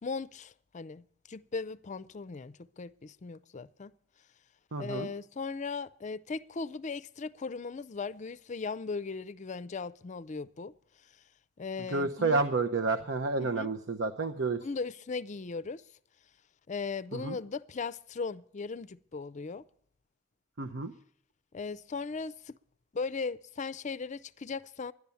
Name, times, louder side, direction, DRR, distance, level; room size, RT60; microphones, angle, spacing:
voice 1, 0.0-3.9 4.8-10.7 11.6-12.4 13.4-13.7 14.6-15.8 16.7-19.6 21.5-22.5 22.9-24.9, left 4 dB, 40° left, 0.5 m, -38 dB
voice 2, 4.7-5.1 11.9-14.6 17.1-17.4 20.6-20.9, right 3 dB, 70° right, 0.7 m, -30 dB
12.0 x 11.0 x 6.9 m
head